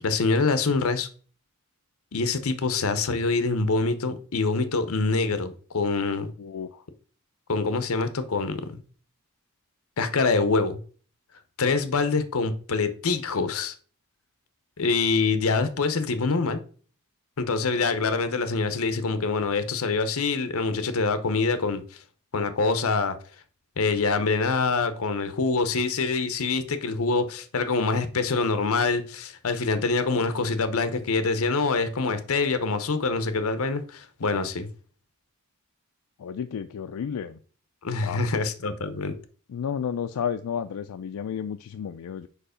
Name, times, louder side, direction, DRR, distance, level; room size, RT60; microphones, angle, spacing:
voice 1, 0.0-1.1 2.1-6.3 7.5-8.8 10.0-10.8 11.6-13.7 14.8-16.6 17.4-21.8 22.3-23.1 23.8-34.7 37.8-39.1, left 4 dB, 70° left, 0.7 m, -25 dB
voice 2, 6.4-6.8 36.2-37.4 38.0-38.3 39.5-42.3, left 7 dB, 90° left, 0.4 m, -32 dB
4.9 x 4.6 x 5.0 m
head